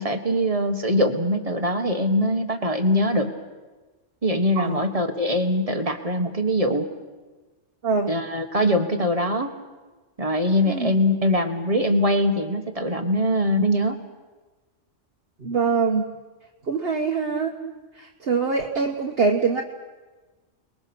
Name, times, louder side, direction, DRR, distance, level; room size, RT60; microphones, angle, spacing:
voice 1, 0.0-3.3 4.2-6.9 8.1-9.5 10.2-14.0, equal, 30° right, 7 dB, 1.6 m, -22 dB
voice 2, 15.4-16.1 16.7-17.5 18.0-19.6, right 4 dB, 55° right, 1 dB, 1.5 m, -23 dB
29.0 x 21.5 x 6.2 m, 1.3 s
omnidirectional pair, 1.3 m